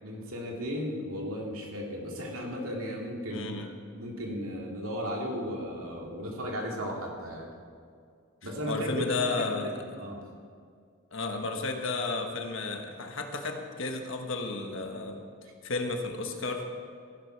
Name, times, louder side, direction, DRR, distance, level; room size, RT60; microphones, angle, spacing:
voice 1, 0.0-7.5 8.4-10.2, equal, 85° right, -1 dB, 2.5 m, -35 dB
voice 2, 3.3-3.7 8.4-9.8 11.1-15.2 15.6-16.7, left 3 dB, 65° left, 4 dB, 1.2 m, -33 dB
15.0 x 11.5 x 4.6 m, 2.3 s
head